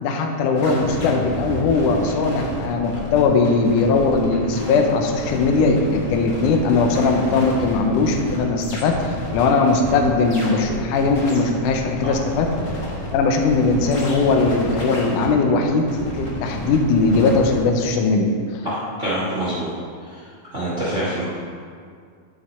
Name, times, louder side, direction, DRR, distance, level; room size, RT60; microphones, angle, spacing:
voice 1, 0.0-12.5 13.1-18.6, left 3 dB, 75° left, 3 dB, 1.9 m, -19 dB
sound 1, 0.5-17.6, left 1 dB, 45° left, 1.4 m, -31 dB
voice 2, 18.6-19.7 20.5-21.2, right 1 dB, 80° right, -8 dB, 0.6 m, -25 dB
13.0 x 5.1 x 4.3 m, 2.2 s
omnidirectional pair, 4.4 m